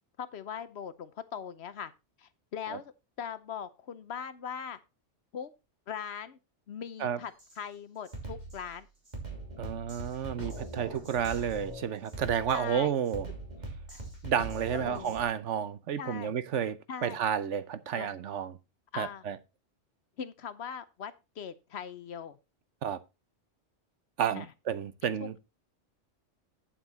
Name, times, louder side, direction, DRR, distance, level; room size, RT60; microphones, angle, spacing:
voice 1, 0.2-1.9 2.2-2.9 3.2-4.8 5.3-5.5 5.9-6.4 6.7-8.9 12.5-12.9 13.9-14.0 14.7-15.1 16.0-16.3 16.9-17.2 17.9-18.1 18.9-19.3 20.2-22.4 24.3-24.5 25.2-25.4, left 7 dB, 65° left, 1.0 m, -40 dB
Drum kit, 7.4-7.6 8.1-15.2, right 2 dB, 35° right, 3.4 m, -42 dB
voice 2, 9.6-13.3 14.2-18.6 19.0-19.4 22.8-23.0 24.2-25.3, right 8 dB, 80° right, 1.2 m, -31 dB
8.8 x 7.7 x 4.1 m
omnidirectional pair, 1.2 m